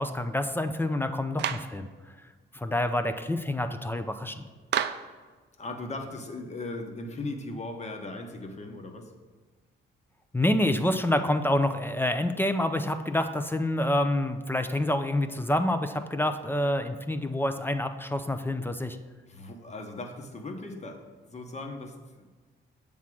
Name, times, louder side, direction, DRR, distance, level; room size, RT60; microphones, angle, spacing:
voice 1, 0.0-1.9 2.5-4.3 10.3-19.0, left 1 dB, 10° left, 8 dB, 0.4 m, -27 dB
Clapping, 1.4-1.8 4.7-5.1, right 9 dB, 60° right, 0.4 m, -29 dB
voice 2, 5.6-9.1 19.3-22.3, left 2 dB, 35° left, 4 dB, 1.1 m, -38 dB
7.3 x 3.6 x 6.0 m, 1.4 s
cardioid pair, 90°, 20 cm